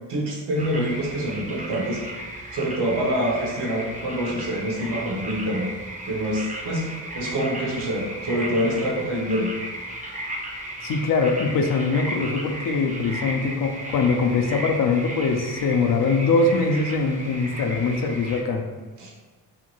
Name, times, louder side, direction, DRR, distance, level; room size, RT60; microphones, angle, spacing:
voice 1, 0.1-2.0 2.5-5.7 6.0-9.5 19.0-19.1, equal, 70° right, -2 dB, 0.9 m, -26 dB
sound 1, 0.5-18.4, right 1 dB, 20° right, 0.5 m, -35 dB
voice 2, 10.8-18.6, left 4 dB, 50° left, 4 dB, 0.5 m, -22 dB
2.8 x 2.5 x 2.9 m, 1.4 s
supercardioid pair, 45°, 43 cm